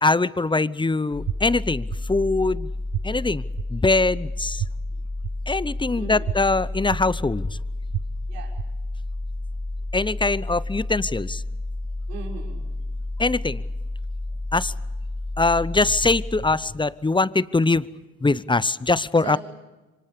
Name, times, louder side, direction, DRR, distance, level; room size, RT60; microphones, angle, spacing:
voice 1, 0.0-2.7 3.0-3.4 3.7-4.6 5.5-7.6 9.9-11.4 13.2-13.6 14.5-14.7 15.4-17.9 18.2-19.4, left 3 dB, 10° left, 19 dB, 0.7 m, -22 dB
sound 1, 1.1-16.9, left 2 dB, 35° left, 2.6 m, -31 dB
sound 2, 1.3-1.4 1.9-2.0 2.9-3.0 3.6-3.7 4.6-4.7 5.2-5.3 6.3-6.4 6.9-7.0 7.9-8.0 8.6-8.7, right 14 dB, 45° right, 0.8 m, -27 dB
voice 2, 5.9-6.3 8.3-8.5 12.1-12.7 19.2-19.4, right 7 dB, 85° right, -1 dB, 6.2 m, -38 dB
28.0 x 25.0 x 5.1 m, 1.1 s
hypercardioid pair, 65°, 43 cm